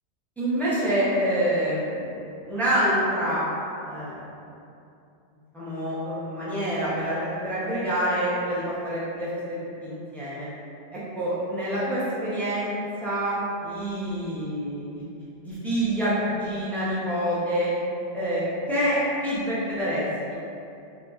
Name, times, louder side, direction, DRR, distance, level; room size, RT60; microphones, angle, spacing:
voice 1, 0.4-2.2 2.5-3.4 3.8-4.2 5.5-10.5 11.2-13.4 13.6-15.0 15.4-17.7 18.1-18.4 18.7-20.3, equal, ahead, -10 dB, 0.5 m, -27 dB
3.9 x 2.4 x 2.4 m, 2.7 s
omnidirectional pair, 1.2 m